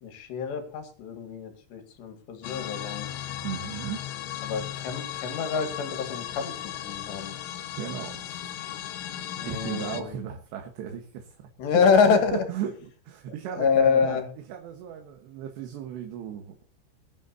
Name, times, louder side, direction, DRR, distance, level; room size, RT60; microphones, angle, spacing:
voice 1, 0.0-3.1 4.4-7.3 9.4-10.2 11.6-12.4 13.6-14.2, left 6 dB, 65° left, 6 dB, 4.1 m, -26 dB
sound 1, 2.4-10.0, left 12 dB, 80° left, 3.6 m, -36 dB
voice 2, 3.4-4.0 7.7-8.4 9.4-11.5 12.1-14.2 14.5-16.6, right 9 dB, 70° right, 4 dB, 3.3 m, -36 dB
22.0 x 11.0 x 2.8 m, 0.38 s
omnidirectional pair, 5.7 m